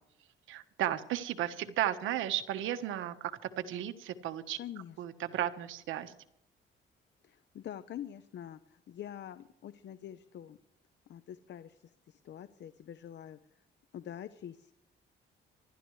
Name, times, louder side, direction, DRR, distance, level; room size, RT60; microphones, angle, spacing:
voice 1, 0.5-4.6 5.0-6.1, right 11 dB, 85° right, 9 dB, 1.3 m, -34 dB
voice 2, 4.6-5.0 7.2-10.6 11.1-13.4 13.9-14.7, left 10 dB, 65° left, 12 dB, 0.9 m, -45 dB
26.0 x 13.0 x 3.3 m, 0.78 s
cardioid pair, 90°, 20 cm